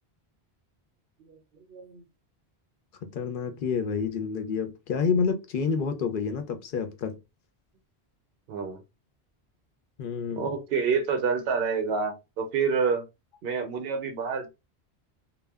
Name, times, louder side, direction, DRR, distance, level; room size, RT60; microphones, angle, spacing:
voice 1, 1.7-2.0 8.5-8.8 10.3-13.0 13.4-14.5, right 5 dB, 65° right, 0.8 m, -28 dB
voice 2, 3.0-7.2 10.0-10.5, left 5 dB, 60° left, 0.7 m, -28 dB
2.1 x 2.1 x 3.4 m
omnidirectional pair, 1.1 m